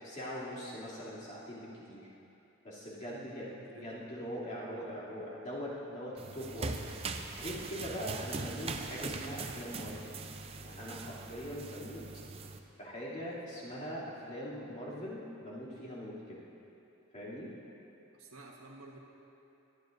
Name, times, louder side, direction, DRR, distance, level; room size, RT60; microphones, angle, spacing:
voice 1, 0.0-2.1 2.6-10.1 10.6-12.0 12.8-16.4 17.1-17.5, equal, 35° left, -8 dB, 2.7 m, -42 dB
voice 2, 3.0-4.1 11.6-11.9 13.2-13.7 18.1-19.0, right 2 dB, 85° right, -1 dB, 1.4 m, -54 dB
sound 1, 6.2-12.6, right 3 dB, 25° right, 0.5 m, -41 dB
21.5 x 11.5 x 2.6 m, 2.9 s
head